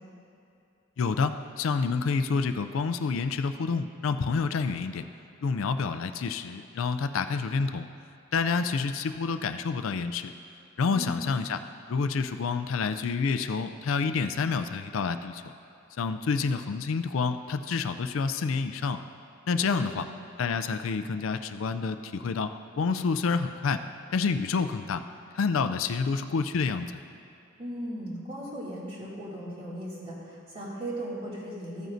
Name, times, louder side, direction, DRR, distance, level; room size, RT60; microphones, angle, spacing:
voice 1, 1.0-5.0 5.4-7.9 8.3-10.3 10.8-11.6 11.9-15.4 16.0-19.0 19.5-20.1 20.4-23.8 24.1-25.0 25.3-26.9, left 5 dB, 75° left, 9 dB, 0.4 m, -28 dB
voice 2, 10.9-11.2 19.6-19.9 27.6-31.9, right 1 dB, 30° right, -7 dB, 2.4 m, -37 dB
14.5 x 9.1 x 2.6 m, 2.6 s
head